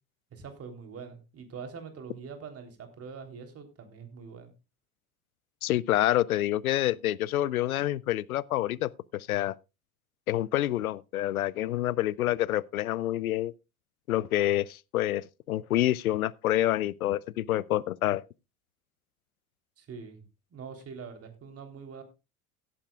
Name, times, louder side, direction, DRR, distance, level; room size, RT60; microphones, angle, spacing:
voice 1, 0.3-4.5 19.8-20.2 20.5-22.0, right 5 dB, 35° right, 3.5 m, -44 dB
voice 2, 5.6-9.6 10.3-13.5 14.1-18.2, left 14 dB, 80° left, 0.6 m, -27 dB
17.0 x 9.7 x 2.3 m
figure-of-eight pair, 75°, 42 cm